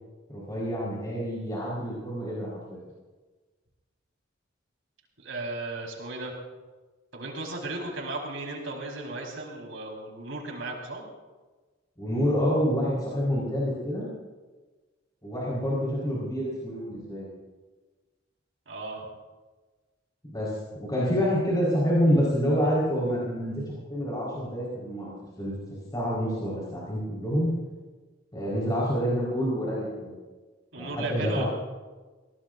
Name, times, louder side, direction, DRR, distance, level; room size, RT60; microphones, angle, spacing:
voice 1, 0.3-2.8 12.0-14.1 15.2-17.3 20.3-23.6 23.9-25.5 25.9-27.5 28.3-30.1 30.8-31.5, equal, 20° left, -6 dB, 4.7 m, -27 dB
voice 2, 5.2-6.3 7.1-11.0 18.7-19.0 30.7-31.5, right 2 dB, 75° right, -1 dB, 4.6 m, -35 dB
23.0 x 18.5 x 2.7 m, 1.3 s
head